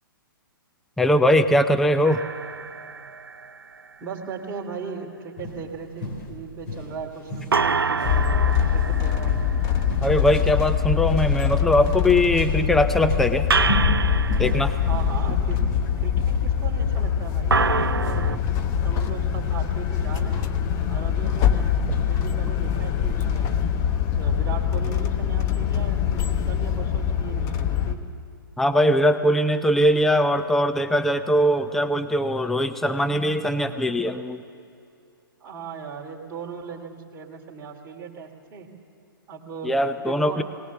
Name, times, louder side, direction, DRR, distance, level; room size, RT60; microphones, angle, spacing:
voice 1, 1.0-2.2 10.0-13.5 14.4-14.8 28.6-34.4 39.6-40.4, left 1 dB, ahead, 10 dB, 0.5 m, -21 dB
sound 1, 2.0-3.8 7.5-10.8 13.5-15.7 17.5-18.4, right 5 dB, 90° right, 0.5 m, -27 dB
voice 2, 4.0-9.4 14.8-15.6 16.0-18.2 18.8-20.5 20.9-23.5 24.1-28.0 35.4-38.7 39.3-39.7 40.0-40.4, right 6 dB, 20° right, -1 dB, 2.6 m, -38 dB
sound 2, 5.4-22.2, left 2 dB, 50° left, 4.3 m, -34 dB
sound 3, 8.0-28.0, left 8 dB, 25° left, 1.0 m, -24 dB
19.5 x 19.0 x 7.2 m, 2.6 s
hypercardioid pair, 125°, 12 cm